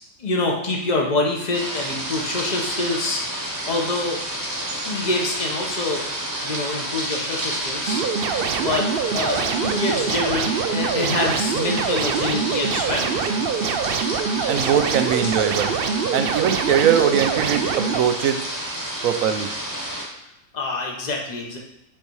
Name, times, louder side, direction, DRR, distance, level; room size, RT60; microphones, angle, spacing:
voice 1, 0.2-3.2 3.7-4.2 4.8-6.0 6.4-8.0 8.5-8.9 9.1-13.4 20.5-21.6, left 2 dB, 35° left, -1 dB, 1.3 m, -26 dB
sound 1, 1.5-20.0, right 1 dB, 15° right, 1.2 m, -30 dB
sound 2, 7.9-18.0, right 6 dB, 60° right, 0.6 m, -25 dB
voice 2, 14.5-18.4 19.0-19.5, right 8 dB, 90° right, 8 dB, 1.1 m, -21 dB
8.2 x 4.2 x 4.7 m, 0.86 s
omnidirectional pair, 1.4 m